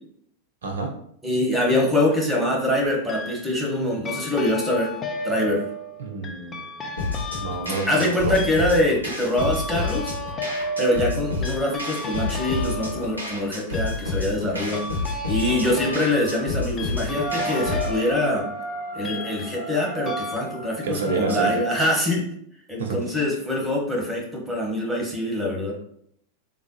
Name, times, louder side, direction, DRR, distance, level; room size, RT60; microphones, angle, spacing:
voice 1, 0.6-0.9 6.0-6.6 7.3-8.3 15.5-15.8 20.8-21.5 22.8-23.0, right 3 dB, 65° right, 2 dB, 0.6 m, -28 dB
voice 2, 1.2-4.9 5.2-5.6 7.9-10.1 10.8-14.8 15.3-18.4 18.9-22.2 22.7-25.8, left 1 dB, 10° right, -1 dB, 1.0 m, -24 dB
sound 1, 2.1-2.3 3.1-3.7 4.0-19.8 20.1-20.4, equal, 25° left, 0.4 m, -34 dB
sound 2, 7.0-18.0, left 3 dB, 90° left, 0.7 m, -30 dB
sound 3, 17.1-21.6, right 3 dB, 65° left, 1.1 m, -32 dB
3.4 x 2.2 x 2.8 m, 0.69 s
figure-of-eight pair, 90°, 0 cm